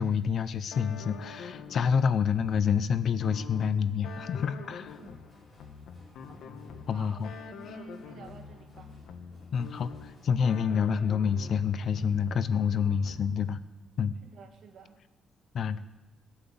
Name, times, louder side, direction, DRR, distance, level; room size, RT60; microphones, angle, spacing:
voice 1, 0.0-4.9 6.9-7.3 9.5-13.6 14.0-14.1 15.5-15.8, left 7 dB, 45° left, 14 dB, 0.6 m, -28 dB
sound 1, 0.7-13.6, left 6 dB, 70° left, 1.3 m, -46 dB
sound 2, 4.7-10.3, left 1 dB, 15° left, 5.2 m, -59 dB
voice 2, 4.7-5.1 6.3-6.6 6.9-9.0 14.2-15.0, right 4 dB, 55° right, 3 dB, 2.3 m, -51 dB
17.5 x 8.8 x 7.0 m, 1.1 s
cardioid pair, 180°, 0 cm